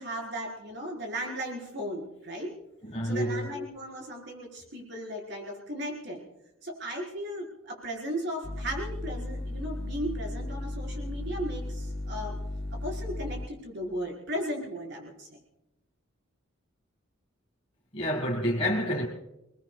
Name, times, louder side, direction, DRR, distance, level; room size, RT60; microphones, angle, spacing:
voice 1, 0.0-2.5 3.0-6.2 6.6-12.4 12.7-15.3, equal, 55° right, 4.4 m, -36 dB
voice 2, 2.8-3.5 17.9-19.1, equal, 30° left, 1.6 m, -28 dB
sound 1, 8.4-13.5, left 1 dB, 50° left, 0.9 m, -35 dB
29.5 x 20.0 x 2.3 m
head